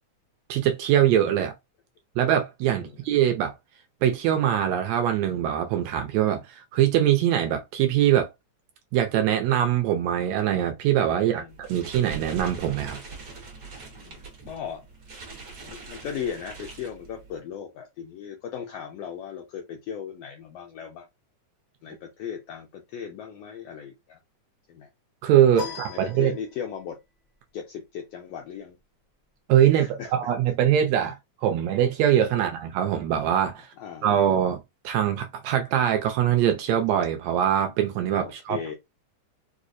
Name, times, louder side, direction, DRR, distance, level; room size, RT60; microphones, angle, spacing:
voice 1, 0.5-1.5 2.2-3.5 4.0-8.3 8.9-13.0 25.2-26.3 29.5-31.2 31.4-33.7 34.0-38.6, right 10 dB, 80° right, 1.6 m, -23 dB
voice 2, 2.7-3.2 11.1-11.5 13.9-14.9 15.6-21.1 21.8-24.2 24.7-24.9 25.6-27.0 27.5-28.8 29.8-30.1 33.8-34.3 38.2-38.8, left 8 dB, 85° left, 1.4 m, -37 dB
sound 1, 11.5-17.4, right 3 dB, 55° right, 1.0 m, -42 dB
sound 2, 25.5-26.9, left 7 dB, 45° left, 0.5 m, -39 dB
4.7 x 2.0 x 2.5 m
omnidirectional pair, 3.4 m